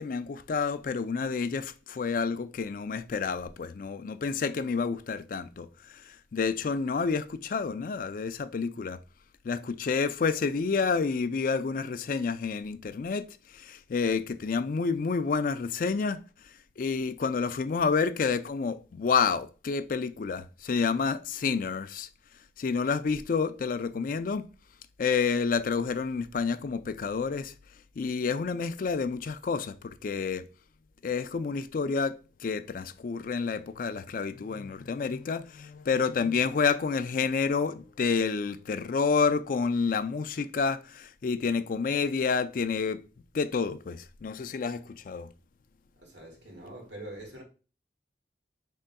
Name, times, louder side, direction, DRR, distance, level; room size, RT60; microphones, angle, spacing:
voice 1, 0.0-9.0 9.4-13.2 13.5-16.2 16.8-22.1 22.6-24.4 25.0-27.5 28.0-30.4 31.0-43.0 43.3-45.3, left 5 dB, 50° left, 0.3 m, -29 dB
voice 2, 46.0-47.4, right 1 dB, 85° right, 1.8 m, -44 dB
5.4 x 3.6 x 2.2 m
head